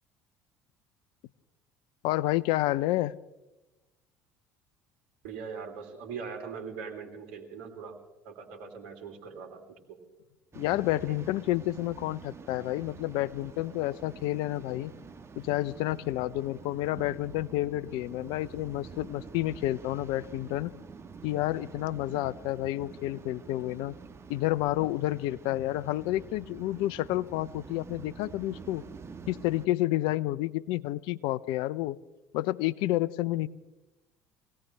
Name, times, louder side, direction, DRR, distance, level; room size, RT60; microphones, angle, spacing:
voice 1, 2.0-3.1 10.5-14.9 15.4-20.7 21.2-23.9 24.3-28.8 29.3-32.0 32.3-33.5, left 16 dB, 65° left, 19 dB, 0.6 m, -30 dB
voice 2, 5.2-8.0 8.2-9.6 9.9-10.0, right 6 dB, 70° right, 3 dB, 2.9 m, -41 dB
Waves surf, 10.5-29.7, right 5 dB, 30° right, 1.5 m, -47 dB
24.0 x 17.5 x 3.4 m, 1.1 s
hypercardioid pair, 65°, 9 cm